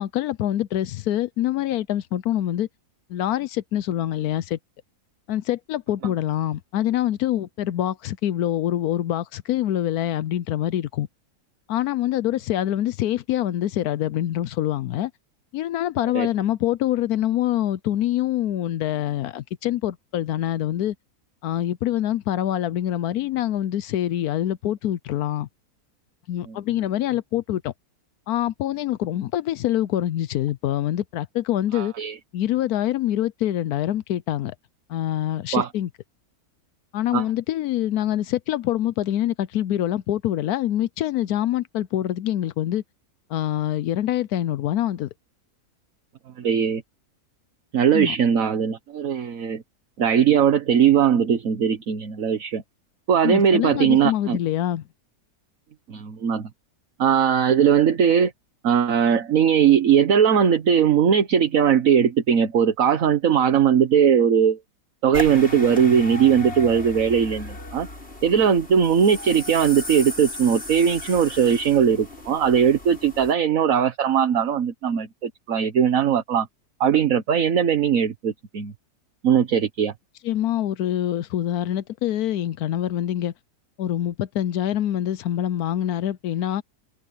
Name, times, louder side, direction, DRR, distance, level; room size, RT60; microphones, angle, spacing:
voice 1, 0.0-2.7 3.1-4.6 5.3-11.1 11.7-15.1 15.5-20.9 21.4-25.5 26.3-27.7 28.3-31.9 32.3-34.5 34.9-35.9 36.9-42.8 43.3-45.1 47.9-48.2 53.2-54.8 80.2-83.3 83.8-86.6, left 12 dB, 75° left, 1.1 m, -25 dB
voice 2, 31.7-32.1 35.5-35.7 37.1-37.2 46.4-46.8 47.7-49.6 50.0-52.6 53.1-54.4 55.9-56.5 57.0-58.3 58.6-64.6 65.0-67.9 68.2-76.5 76.8-78.7 79.2-79.9, right 8 dB, 60° right, 1.6 m, -19 dB
sound 1, 65.1-73.3, left 1 dB, 40° left, 7.7 m, -36 dB
omnidirectional pair, 1.7 m